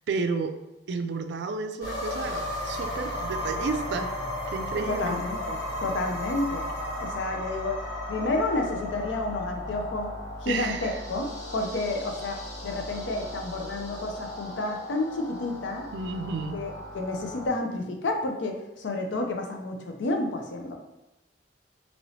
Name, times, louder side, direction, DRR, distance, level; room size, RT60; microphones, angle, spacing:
voice 1, 0.1-0.6 0.9-4.1 4.5-5.2 10.5-11.0 15.9-16.6, right 4 dB, 65° right, 7 dB, 0.3 m, -31 dB
sound 1, 1.8-17.5, left 1 dB, 45° left, 1.4 m, -35 dB
voice 2, 4.7-6.7 7.0-7.8 8.1-15.9 16.5-20.8, left 2 dB, 75° left, 3 dB, 0.5 m, -30 dB
3.0 x 2.9 x 2.7 m, 0.95 s
head